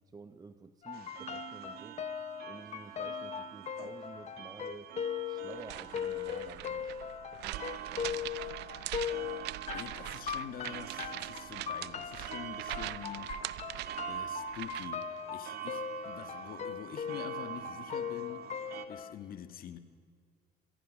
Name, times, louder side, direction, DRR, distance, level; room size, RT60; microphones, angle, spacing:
voice 1, 0.1-2.0 2.4-5.0 5.2-7.0 7.3-8.3, right 4 dB, 20° right, 0.8 m, -51 dB
sound 1, 0.8-19.1, left 9 dB, 40° left, 0.7 m, -39 dB
sound 2, 0.9-18.9, right 9 dB, 70° right, 1.5 m, -45 dB
sound 3, 5.5-15.0, right 16 dB, 85° right, 0.7 m, -42 dB
voice 2, 9.7-13.5 14.1-18.5 18.9-19.8, left 9 dB, 60° left, 1.5 m, -46 dB
26.5 x 18.5 x 6.3 m
cardioid pair, 110°, 17 cm